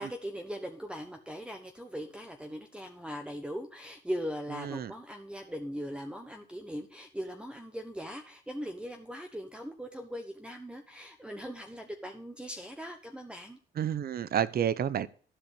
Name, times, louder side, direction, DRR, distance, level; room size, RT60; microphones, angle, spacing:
voice 1, 0.0-13.6, equal, 5° right, 5 dB, 1.2 m, -40 dB
voice 2, 4.5-4.9 13.7-15.1, right 9 dB, 50° right, 17 dB, 0.7 m, -30 dB
12.5 x 5.2 x 8.1 m, 0.43 s
cardioid pair, 90°, 20 cm